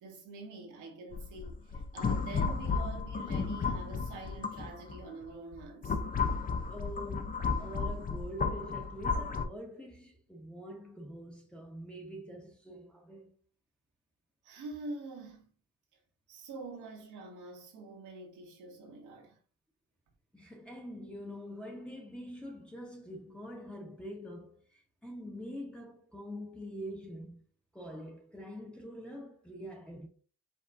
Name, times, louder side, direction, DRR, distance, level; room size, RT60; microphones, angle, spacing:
voice 1, 0.0-6.0 14.4-15.5 16.3-19.4, right 3 dB, 85° right, 1.5 m, -46 dB
sound 1, 1.1-5.0 5.5-9.4, left 5 dB, 30° left, 0.5 m, -33 dB
voice 2, 6.7-13.3 20.3-27.4 27.7-30.1, equal, 5° left, 1.2 m, -45 dB
5.2 x 3.6 x 2.5 m
cardioid pair, 90°, 30 cm